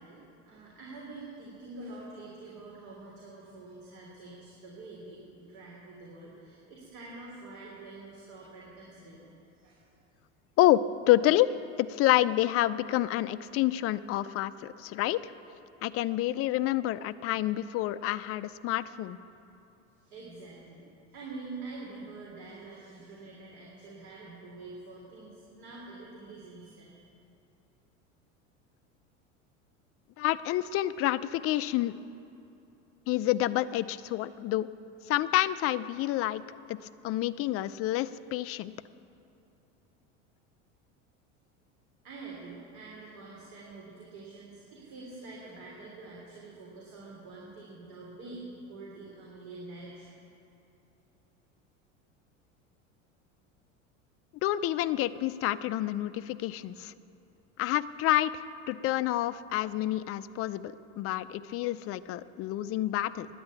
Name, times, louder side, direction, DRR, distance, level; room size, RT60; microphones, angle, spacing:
voice 1, 0.0-9.3 9.6-9.8 20.0-20.8 21.1-27.0 42.0-50.2, right 3 dB, 60° right, -4 dB, 3.3 m, -46 dB
voice 2, 10.6-11.5 11.8-14.5 14.8-15.3 15.8-19.2 30.2-32.0 33.1-34.7 35.1-36.4 36.7-38.7 54.4-56.9 57.6-63.3, left 14 dB, 35° left, 14 dB, 0.5 m, -28 dB
10.5 x 9.4 x 8.6 m, 2.7 s
hypercardioid pair, 90°, 40 cm